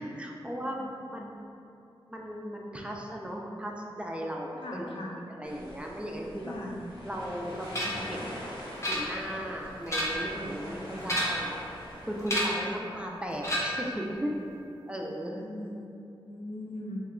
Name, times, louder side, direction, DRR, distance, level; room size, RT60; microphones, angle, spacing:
voice 1, 0.0-0.8 1.1-1.3 2.1-5.0 5.3-6.5 7.0-8.2 8.9-14.3 14.9-15.4, equal, 10° right, -1 dB, 0.4 m, -36 dB
voice 2, 0.6-1.5 4.6-5.1 6.4-6.8 10.8-11.4 12.9-13.1 15.4-17.0, left 1 dB, 70° left, -2 dB, 0.5 m, -41 dB
sound 1, 5.4-12.3, equal, 85° left, 0.9 m, -43 dB
sound 2, 7.7-8.1 8.8-9.4 9.8-10.3 11.0-11.6 12.3-12.7 13.4-13.9, equal, 30° left, 0.7 m, -30 dB
2.9 x 2.2 x 3.6 m, 2.6 s
cardioid pair, 60°, 9 cm